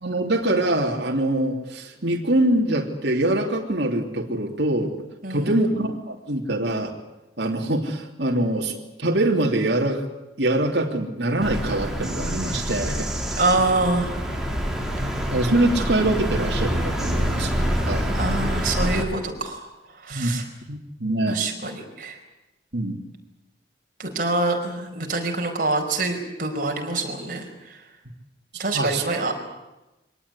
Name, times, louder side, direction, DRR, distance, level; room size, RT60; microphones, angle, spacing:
voice 1, 0.0-4.9 5.3-6.9 7.4-10.0 10.4-13.2 15.3-17.5 17.9-18.1 20.1-20.3 20.7-21.4 22.7-22.9 28.7-29.0, right 1 dB, 65° right, 0 dB, 3.1 m, -24 dB
voice 2, 5.2-5.5 13.4-14.4 18.1-19.7 20.0-20.5 21.3-22.2 24.0-27.8 28.6-29.5, right 2 dB, 45° right, 2 dB, 5.0 m, -26 dB
Bird vocalization bird call bird song, 11.4-19.0, equal, 5° right, 3.4 m, -26 dB
24.5 x 18.5 x 9.9 m, 1.0 s
head